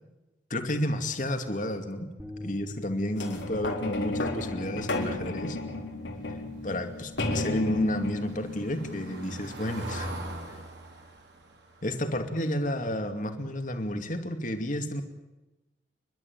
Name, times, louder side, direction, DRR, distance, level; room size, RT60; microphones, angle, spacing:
voice 1, 0.5-2.1 2.4-5.6 6.6-10.1 11.8-15.0, left 1 dB, 45° left, 6 dB, 2.5 m, -31 dB
sound 1, 2.2-8.5, left 2 dB, 10° right, 3.1 m, -47 dB
sound 2, 3.2-9.9 10.6-10.7, left 2 dB, 85° left, 4.2 m, -33 dB
Car passing by / Engine, 6.6-13.5 13.9-14.1 14.4-14.5, right 1 dB, 70° right, 4.0 m, -43 dB
29.5 x 12.0 x 9.2 m, 1.1 s
head